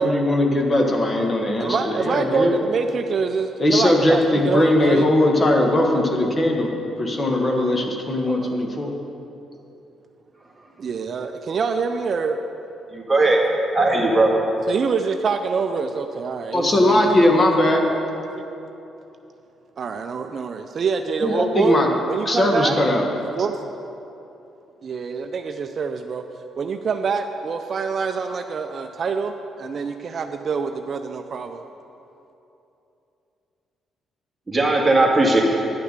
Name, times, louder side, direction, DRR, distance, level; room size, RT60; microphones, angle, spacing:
voice 1, 0.0-2.5 3.6-6.7 7.0-8.9 16.5-17.8 21.2-21.9 22.2-23.0, left 1 dB, 25° left, 2 dB, 1.2 m, -19 dB
voice 2, 1.2-5.1 8.3-8.6 10.8-12.5 14.7-17.0 17.3-17.9 19.8-21.8 22.1-22.8 23.3-23.6 24.8-26.2 26.6-31.6, right 5 dB, 45° right, 6 dB, 0.4 m, -26 dB
voice 3, 12.9-13.4 13.7-14.3 34.5-35.4, right 2 dB, 15° right, -2 dB, 1.8 m, -17 dB
10.5 x 6.6 x 6.6 m, 2.9 s
cardioid pair, 110°, 0 cm